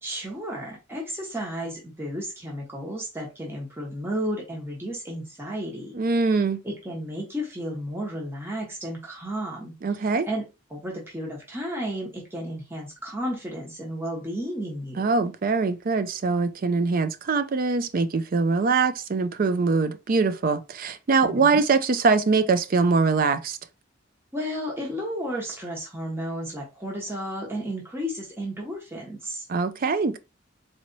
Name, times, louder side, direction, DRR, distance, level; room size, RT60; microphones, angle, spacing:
voice 1, 0.0-6.0 6.6-9.7 10.2-15.1 21.2-21.6 24.3-29.5, equal, 10° right, 1.1 m, -33 dB
voice 2, 6.0-6.6 9.8-10.3 15.0-23.6 29.5-30.2, right 4 dB, 45° right, 0.4 m, -23 dB
4.1 x 3.0 x 2.7 m
head